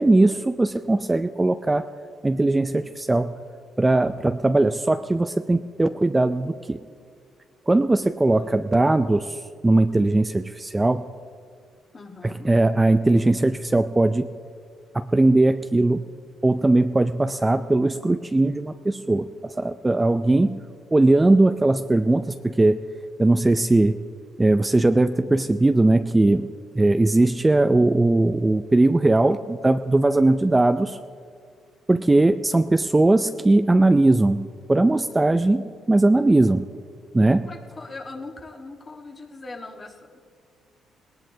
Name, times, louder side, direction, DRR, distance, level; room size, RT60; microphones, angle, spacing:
voice 1, 0.0-1.9 2.2-3.3 3.8-6.8 7.7-11.1 12.2-14.3 14.9-16.0 16.4-20.6 20.9-22.8 23.2-24.0 24.4-31.0 31.9-36.7 37.1-37.5, right 2 dB, 15° right, 9 dB, 0.4 m, -19 dB
voice 2, 8.3-8.6 11.9-12.5 37.4-40.2, left 3 dB, 30° left, 3 dB, 1.4 m, -40 dB
18.5 x 18.0 x 2.8 m, 2.1 s
cardioid pair, 90°, 0 cm